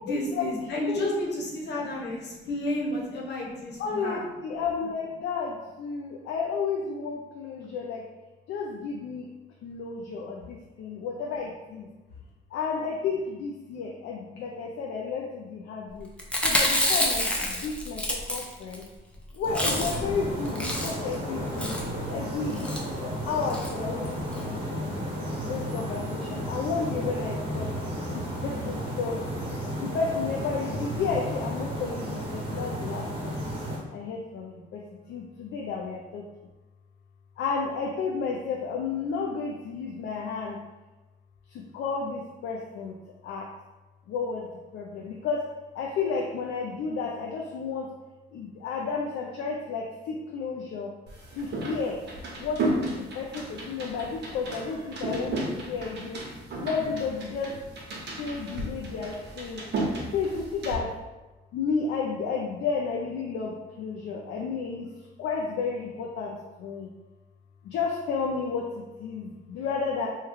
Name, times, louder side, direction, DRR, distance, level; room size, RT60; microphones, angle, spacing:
voice 1, 0.0-4.2, left 1 dB, 60° left, -3 dB, 1.0 m, -31 dB
voice 2, 3.8-8.0 8.5-9.3 9.6-11.9 12.5-16.1 16.4-18.9 19.3-21.8 22.1-25.0 25.5-27.7 28.1-29.2 29.8-33.4 33.9-36.3 37.4-40.6 41.5-42.9 43.2-43.5 44.1-44.5 44.7-45.5 45.7-47.9 48.3-50.9 51.3-52.0 52.4-56.2 56.6-57.6 58.2-59.6 60.1-61.0 61.5-64.9 65.2-66.9 67.6-70.1, left 5 dB, 75° left, 0 dB, 0.4 m, -32 dB
Chewing mastication, 16.2-18.8 19.1-19.2 19.4-20.1 20.4-21.1 21.6-21.9 22.5-22.8 23.5-23.7 24.0-24.1 24.3-24.4, left 1 dB, 5° left, 0.5 m, -27 dB
sound 1, 19.4-33.8, equal, 25° right, 1.0 m, -33 dB
sound 2, 51.1-60.8, right 2 dB, 60° right, 0.9 m, -34 dB
3.0 x 2.2 x 3.4 m, 1.1 s
cardioid pair, 90°, 20 cm